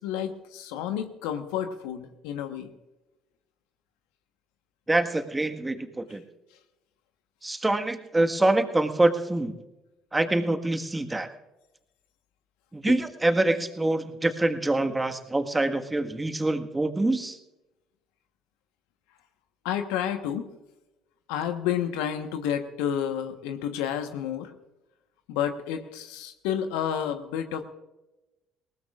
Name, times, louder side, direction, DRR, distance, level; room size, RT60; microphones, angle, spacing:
voice 1, 0.0-2.7 12.9-13.0 19.6-20.5 21.3-24.5 25.3-27.6, left 9 dB, 75° left, 7 dB, 1.2 m, -30 dB
voice 2, 4.9-6.2 7.4-9.5 10.1-11.3 12.7-17.4, right 2 dB, 15° right, 7 dB, 1.6 m, -25 dB
20.5 x 18.5 x 2.5 m, 1.0 s
hypercardioid pair, 60°, 0 cm